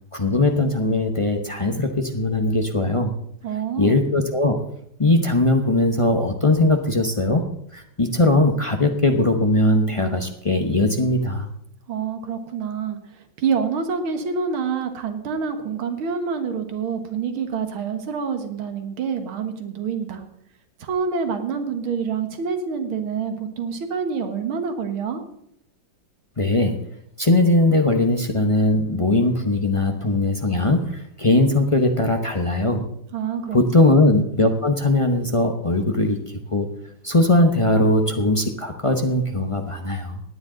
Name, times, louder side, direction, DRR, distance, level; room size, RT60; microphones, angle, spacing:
voice 1, 0.1-3.2 3.8-4.6 5.0-7.5 7.7-11.5 26.4-26.8 27.2-32.9 33.5-36.2 36.5-36.7 37.0-40.2, left 2 dB, 35° left, 4 dB, 0.5 m, -20 dB
voice 2, 3.4-4.0 11.9-20.2 20.8-25.2 33.1-34.0, right 6 dB, 90° right, 7 dB, 2.3 m, -27 dB
17.5 x 10.0 x 3.9 m, 0.73 s
omnidirectional pair, 2.2 m